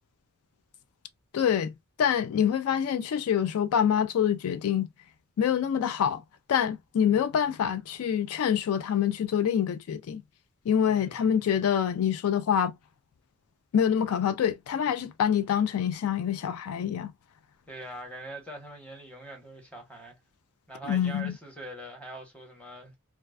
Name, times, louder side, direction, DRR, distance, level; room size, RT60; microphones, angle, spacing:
voice 1, 1.3-4.9 5.4-6.2 6.5-10.2 10.7-12.8 13.7-17.1 20.9-21.4, left 8 dB, 75° left, 0.3 m, -26 dB
voice 2, 10.9-11.5 17.7-20.2 20.7-23.0, right 1 dB, 5° left, 0.9 m, -43 dB
2.4 x 2.2 x 2.3 m
head